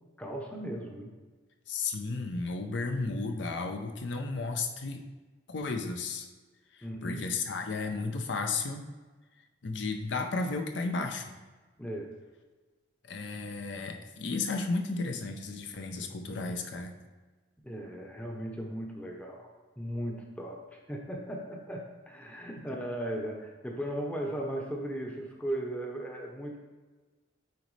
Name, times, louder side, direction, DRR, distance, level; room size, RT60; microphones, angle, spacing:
voice 1, 0.2-1.1 6.8-7.2 11.8-12.1 17.6-19.5 19.8-26.6, right 1 dB, 5° left, 1 dB, 0.7 m, -37 dB
voice 2, 1.7-5.0 5.5-6.3 6.7-8.9 9.6-11.3 13.0-16.9, left 3 dB, 70° left, 5 dB, 0.6 m, -33 dB
9.2 x 4.1 x 3.2 m, 1.3 s
head